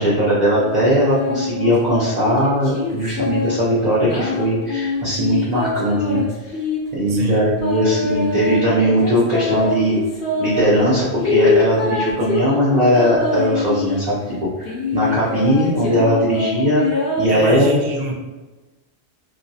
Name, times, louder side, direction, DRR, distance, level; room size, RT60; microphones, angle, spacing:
voice 1, 0.0-6.2 6.9-10.0 10.4-14.2 14.4-17.8, equal, 50° right, -8 dB, 0.6 m, -19 dB
sound 1, 0.6-3.6 4.0-6.8 7.6-10.6 11.2-14.1 14.6-17.3, left 4 dB, 70° left, 0.8 m, -23 dB
voice 2, 7.1-7.5 17.3-18.1, right 2 dB, 85° right, 0 dB, 0.8 m, -26 dB
2.3 x 2.2 x 2.6 m, 1.2 s
omnidirectional pair, 1.1 m